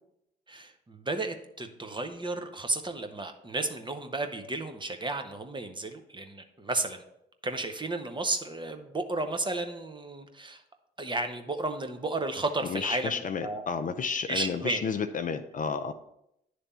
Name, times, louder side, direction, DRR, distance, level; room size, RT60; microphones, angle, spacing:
voice 1, 0.5-7.0 7.4-10.6 11.0-13.6 14.3-14.8, right 2 dB, 20° right, 7 dB, 1.0 m, -33 dB
voice 2, 12.7-15.9, left 5 dB, 40° left, 7 dB, 0.5 m, -31 dB
9.9 x 3.4 x 4.3 m, 0.80 s
hypercardioid pair, 55°, 21 cm